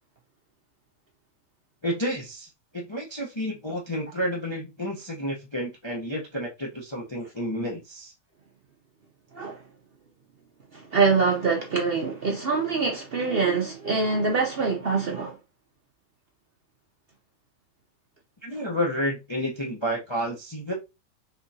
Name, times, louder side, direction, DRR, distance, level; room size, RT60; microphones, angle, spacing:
voice 1, 1.8-2.5 2.7-8.1 18.4-20.7, equal, 30° left, 0.5 m, -30 dB
voice 2, 10.7-15.4, right 4 dB, 50° right, 0.7 m, -24 dB
3.7 x 3.5 x 2.7 m
omnidirectional pair, 1.7 m